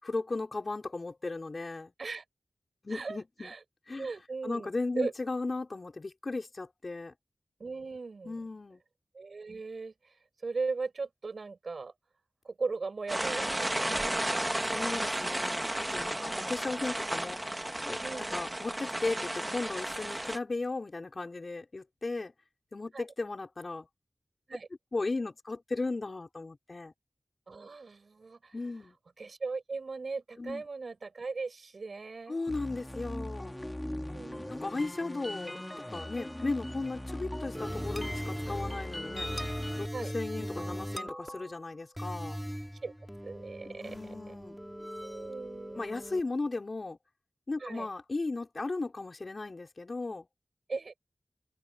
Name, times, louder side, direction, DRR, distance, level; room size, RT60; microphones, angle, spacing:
voice 1, 0.0-1.9 2.8-3.5 3.9-4.1 4.4-7.1 8.2-8.8 14.7-17.4 17.8-22.3 22.7-23.9 24.9-26.9 28.5-29.0 30.4-30.7 32.3-33.6 34.5-35.6 35.9-39.3 39.8-42.4 43.6-44.6 45.7-47.0 47.5-50.3, left 3 dB, 55° left, 5.7 m, -36 dB
voice 2, 2.9-3.6 4.0-4.7 5.0-5.1 7.6-8.4 9.1-9.9 10.4-11.9 12.4-14.1 16.2-16.5 18.0-18.3 22.9-23.1 24.5-24.7 27.5-28.5 29.2-32.4 33.9-34.6 39.9-40.1 42.8-42.9 43.2-44.0 44.3-44.4 45.0-45.8 47.6-47.9 50.7-50.9, right 4 dB, 75° right, 5.4 m, -38 dB
sound 1, 13.1-20.4, right 1 dB, 20° right, 1.7 m, -33 dB
sound 2, 32.5-39.9, left 1 dB, 15° left, 2.7 m, -39 dB
sound 3, 37.5-46.2, equal, 5° right, 5.3 m, -40 dB
open air
cardioid pair, 40°, 0 cm